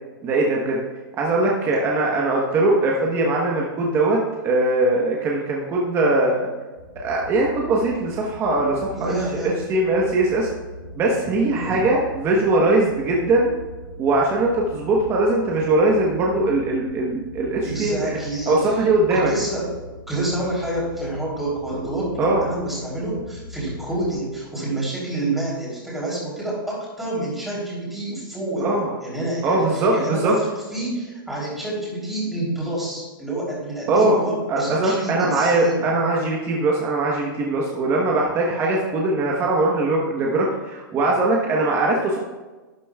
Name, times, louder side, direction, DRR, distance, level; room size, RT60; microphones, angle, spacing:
voice 1, 0.2-0.8 1.2-4.2 4.4-6.5 7.0-9.1 9.7-10.5 11.0-13.5 14.0-18.2 18.5-19.3 22.2-22.4 28.6-28.9 29.4-30.3 33.9-34.2 34.5-42.2, right 2 dB, 20° right, -2 dB, 1.1 m, -21 dB
sound 1, 6.8-24.2, left 2 dB, 60° left, 3.0 m, -40 dB
voice 2, 8.9-9.5 11.5-11.8 17.6-19.7 20.1-35.9, right 1 dB, ahead, -7 dB, 3.3 m, -28 dB
12.0 x 10.0 x 2.4 m, 1.2 s
hypercardioid pair, 155°, 11 cm